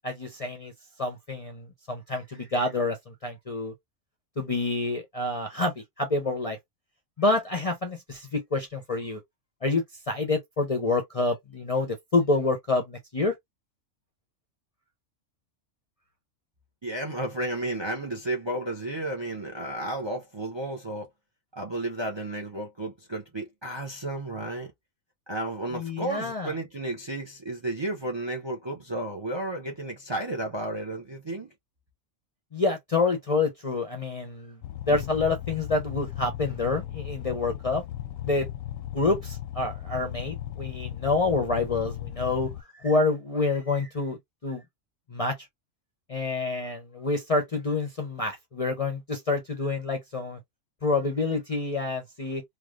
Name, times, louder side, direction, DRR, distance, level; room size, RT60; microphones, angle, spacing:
voice 1, 0.0-0.7 1.0-3.7 4.4-6.6 7.2-9.2 9.6-13.3 25.7-26.5 32.5-34.6 34.9-37.8 38.2-38.5 38.9-42.5 42.8-44.2 44.4-44.6 45.1-45.3 46.1-50.4 50.8-52.4, left 3 dB, 40° left, 0.5 m, -27 dB
voice 2, 16.8-21.1 21.5-24.7 25.3-31.5, right 1 dB, 30° right, 0.5 m, -32 dB
sound 1, 34.6-42.6, left 12 dB, 85° left, 1.0 m, -36 dB
3.2 x 2.4 x 2.3 m
omnidirectional pair, 1.3 m